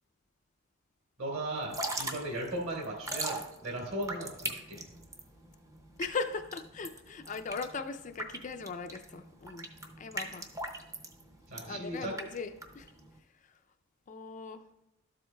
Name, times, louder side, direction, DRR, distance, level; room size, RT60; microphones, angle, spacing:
voice 1, 1.2-4.9 11.5-12.1, right 1 dB, 65° right, -2 dB, 3.3 m, -37 dB
Drip / Trickle dribble, 1.6-13.2, right 2 dB, 15° right, 0.6 m, -40 dB
voice 2, 6.0-9.7 10.0-10.5 11.6-12.9 14.1-14.6, left 4 dB, 35° left, 7 dB, 0.4 m, -39 dB
12.5 x 7.6 x 2.2 m, 0.89 s
head